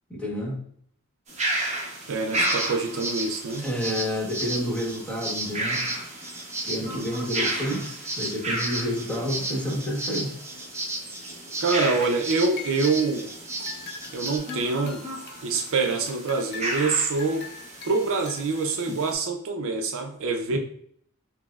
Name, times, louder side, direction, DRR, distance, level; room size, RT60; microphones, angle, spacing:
voice 1, 0.1-0.6 3.6-5.8 6.6-10.3 20.5-20.6, equal, 5° left, -4 dB, 1.0 m, -29 dB
sound 1, 1.3-19.1, right 1 dB, 30° right, 0.9 m, -34 dB
voice 2, 2.1-3.7 6.9-7.2 11.6-13.3 14.1-15.1 15.4-17.5 17.8-20.6, right 3 dB, 65° right, 4 dB, 0.5 m, -26 dB
sound 2, 2.4-14.4, right 2 dB, 10° right, 0.4 m, -34 dB
sound 3, 12.0-13.2 13.6-15.7 16.1-18.7, left 6 dB, 50° left, 0.6 m, -43 dB
5.8 x 2.0 x 2.3 m, 0.65 s
head